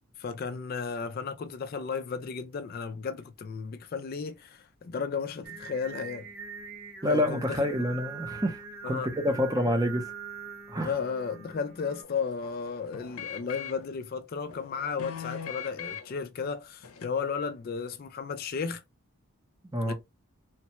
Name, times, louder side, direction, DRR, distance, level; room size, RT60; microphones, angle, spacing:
voice 1, 0.2-6.3 7.1-7.7 8.8-9.1 10.8-18.8 19.9-20.0, left 5 dB, 40° left, 0.3 m, -34 dB
Singing, 5.4-12.0, right 5 dB, 45° right, 0.9 m, -43 dB
voice 2, 7.0-8.6 8.9-10.1 10.7-10.9 19.7-19.9, left 1 dB, 15° right, 0.6 m, -27 dB
sound 1, 12.0-13.9 14.5-16.2 16.8-17.0, left 8 dB, 80° left, 0.6 m, -41 dB
3.2 x 2.2 x 2.9 m
head